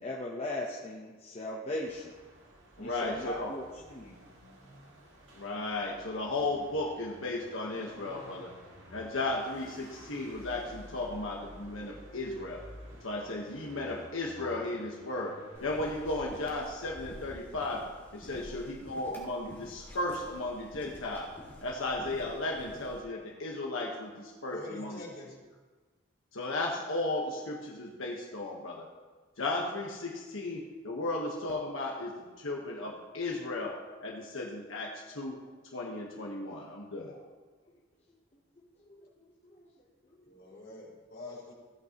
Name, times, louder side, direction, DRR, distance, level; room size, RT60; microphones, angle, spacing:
voice 1, 0.0-2.1 2.8-4.2 38.1-38.2 38.6-39.7 40.1-40.6, left 1 dB, 30° left, -3 dB, 1.0 m, -40 dB
sound 1, 1.8-16.4, equal, 65° right, 2.5 m, -52 dB
voice 2, 2.8-3.5 5.3-8.5 8.9-12.6 13.0-15.3 15.6-25.0 26.3-28.9 29.4-35.4 35.7-37.3, left 2 dB, 80° left, -2 dB, 1.3 m, -35 dB
sound 2, 15.5-23.0, equal, 10° left, 2.8 m, -50 dB
voice 3, 24.5-25.3 40.2-41.5, left 2 dB, 50° left, -4 dB, 3.6 m, -45 dB
16.5 x 8.3 x 3.0 m, 1.4 s
head